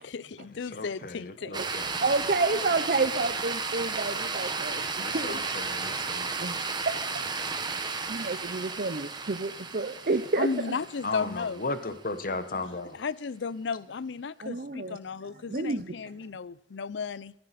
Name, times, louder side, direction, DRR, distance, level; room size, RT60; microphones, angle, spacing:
voice 1, 0.0-1.6 10.4-11.6 12.9-17.3, left 5 dB, 75° left, 0.5 m, -34 dB
voice 2, 0.7-2.0 5.0-6.6 11.0-13.0, left 3 dB, 50° left, 1.1 m, -36 dB
sound 1, 1.5-11.8, right 4 dB, 25° right, 1.2 m, -33 dB
voice 3, 1.5-5.4 6.4-6.6 6.9-7.0 8.1-10.6 14.4-15.0 15.5-16.1, right 3 dB, 50° right, 0.7 m, -30 dB
23.0 x 10.5 x 4.2 m
head